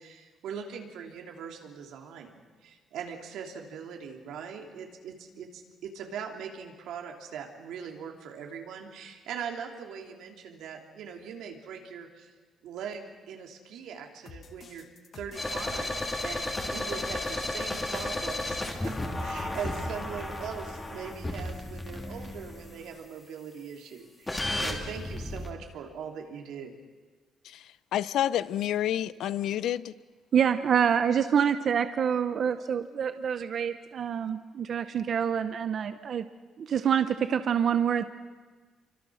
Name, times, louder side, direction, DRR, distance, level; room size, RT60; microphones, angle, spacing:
voice 1, 0.0-12.3 12.6-14.9 15.1-18.9 19.2-26.8, right 7 dB, 85° right, 3.4 m, -41 dB
sound 1, 14.3-19.8, left 5 dB, 35° left, 1.6 m, -49 dB
sound 2, 15.4-22.8 24.3-25.5, left 1 dB, 15° left, 2.6 m, -33 dB
voice 2, 27.4-29.9, left 11 dB, 75° left, 0.7 m, -29 dB
voice 3, 30.3-36.2 36.6-38.0, right 8 dB, 45° right, 0.8 m, -26 dB
29.5 x 24.5 x 6.5 m
cardioid pair, 175°, 0 cm